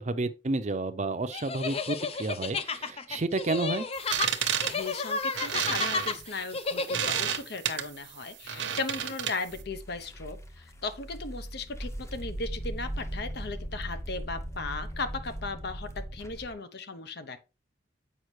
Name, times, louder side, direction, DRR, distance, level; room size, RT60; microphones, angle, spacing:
voice 1, 0.0-3.9, right 2 dB, 40° right, 0.6 m, -31 dB
sound 1, 1.3-7.3, left 4 dB, 35° left, 0.5 m, -32 dB
sound 2, 4.0-9.6, right 9 dB, 85° right, 1.0 m, -31 dB
voice 2, 4.6-17.4, left 3 dB, 60° left, 0.9 m, -37 dB
sound 3, 9.5-16.5, right 1 dB, 15° left, 0.8 m, -39 dB
7.8 x 5.4 x 3.2 m
head